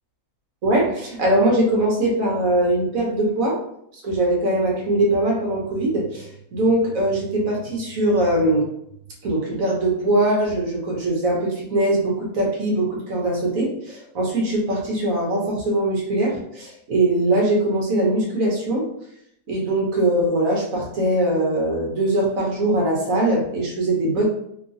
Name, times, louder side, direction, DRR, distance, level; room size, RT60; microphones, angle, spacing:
voice 1, 0.6-3.6 4.0-8.7 9.2-18.8 19.5-24.2, right 1 dB, 60° right, -2 dB, 1.2 m, -21 dB
3.0 x 2.8 x 2.6 m, 0.72 s
omnidirectional pair, 1.7 m